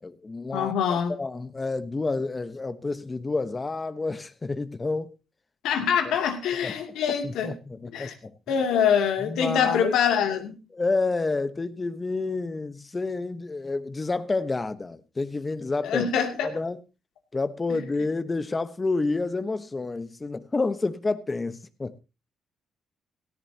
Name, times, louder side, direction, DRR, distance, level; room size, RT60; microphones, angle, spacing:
voice 1, 0.0-5.1 6.0-6.2 6.6-6.7 7.1-8.3 9.2-9.9 10.7-16.1 16.4-16.8 17.3-22.0, left 3 dB, 25° left, 1.0 m, -29 dB
voice 2, 0.5-1.1 5.6-7.5 7.9-8.1 8.5-10.6 15.8-16.5, left 8 dB, 85° left, 2.6 m, -24 dB
16.5 x 14.0 x 2.9 m
cardioid pair, 90°, 0 cm